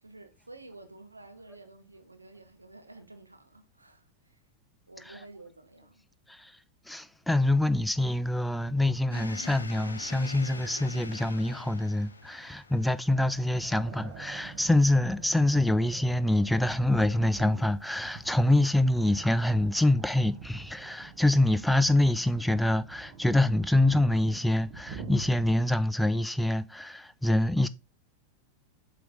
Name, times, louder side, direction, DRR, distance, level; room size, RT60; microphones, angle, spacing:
voice 1, 0.0-4.4 4.9-6.0, right 2 dB, 80° right, 1.0 m, -51 dB
voice 2, 6.9-27.7, left 1 dB, ahead, 0.4 m, -25 dB
sound 1, 9.1-15.6, left 3 dB, 75° left, 0.7 m, -45 dB
sound 2, 13.3-25.6, right 5 dB, 40° right, 1.1 m, -45 dB
7.6 x 3.9 x 3.6 m
figure-of-eight pair, 90°, 0 cm